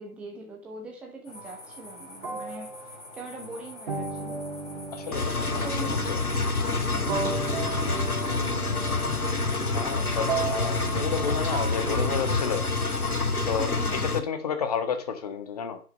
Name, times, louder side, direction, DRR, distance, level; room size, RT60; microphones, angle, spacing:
voice 1, 0.0-2.7 3.1-4.4 5.5-6.0 6.9-7.4 13.6-14.1, right 2 dB, 5° right, 0 dB, 1.1 m, -41 dB
sound 1, 1.2-13.1, left 2 dB, 50° left, 8.0 m, -45 dB
sound 2, 1.4-1.6 2.2-12.5, right 5 dB, 35° right, 2.9 m, -35 dB
voice 2, 4.9-6.2 9.7-12.6 13.5-13.7 14.1-15.8, left 7 dB, 25° left, 8 dB, 1.8 m, -31 dB
Engine, 5.1-14.2, left 3 dB, 75° left, 2.5 m, -27 dB
10.5 x 10.0 x 5.3 m, 0.38 s
figure-of-eight pair, 150°, 45 cm